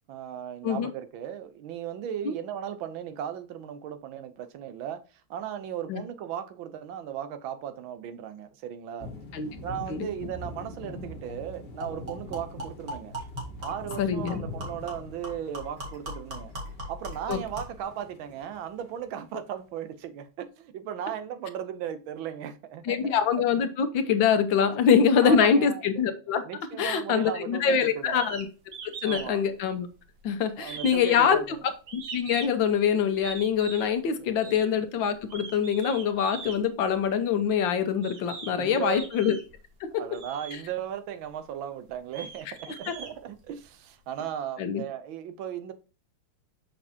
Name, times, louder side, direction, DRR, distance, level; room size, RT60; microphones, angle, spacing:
voice 1, 0.1-5.0 5.3-9.1 9.6-13.2 13.6-16.5 16.9-23.2 24.6-24.7 25.2-25.8 26.1-28.3 29.0-29.4 30.6-31.6 34.2-34.6 37.4-37.5 38.3-39.1 39.9-45.7, right 9 dB, 80° right, 1.5 m, -37 dB
sound 1, 9.0-19.1, left 2 dB, 35° left, 1.4 m, -44 dB
sound 2, 10.9-11.0 11.3-11.4 11.8-17.8, equal, 45° right, 2.5 m, -40 dB
voice 2, 14.0-14.4 17.3-17.4 22.8-26.4 26.8-28.5 29.0-29.9 30.2-31.6 31.9-39.3 39.9-40.0 44.6-44.8, left 7 dB, 75° left, 1.6 m, -24 dB
sound 3, 28.1-28.5 28.7-29.3 29.6-30.2 30.6-32.7 33.2-33.9 34.4-34.7 35.2-36.6 37.4-37.5 38.0-38.6 38.9-39.6 40.1-40.6 41.2-41.3 41.9-43.7, right 5 dB, 65° right, 1.8 m, -41 dB
6.6 x 5.9 x 2.8 m
omnidirectional pair, 2.1 m